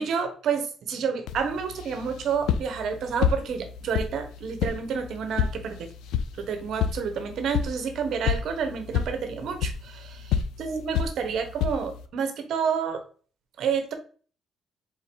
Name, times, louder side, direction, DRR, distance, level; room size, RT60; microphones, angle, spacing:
voice 1, 0.0-5.9 6.4-10.1 10.6-13.0 13.6-13.9, right 6 dB, 70° right, 7 dB, 0.9 m, -29 dB
sound 1, 1.3-12.1, left 8 dB, 90° left, 0.4 m, -30 dB
3.9 x 2.7 x 4.3 m, 0.40 s
cardioid pair, 90°, 0 cm